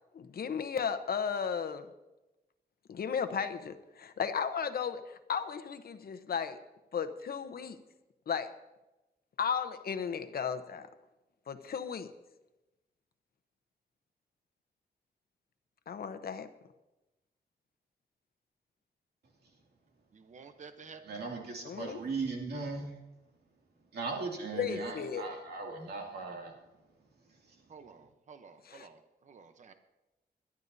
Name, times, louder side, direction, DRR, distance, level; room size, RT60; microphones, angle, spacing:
voice 1, 0.1-1.9 2.9-6.6 6.9-7.8 8.3-8.5 9.4-10.9 11.5-12.1 15.9-16.5 21.6-22.0 24.5-25.3 28.7-28.9, left 7 dB, 70° left, 10 dB, 0.9 m, -35 dB
voice 2, 20.1-21.2 27.7-29.7, right 5 dB, 50° right, 8 dB, 0.8 m, -52 dB
voice 3, 21.1-22.9 23.9-26.5, right 4 dB, 80° right, 0 dB, 2.5 m, -38 dB
21.5 x 11.5 x 2.7 m, 1.0 s
wide cardioid pair, 145°, 17 cm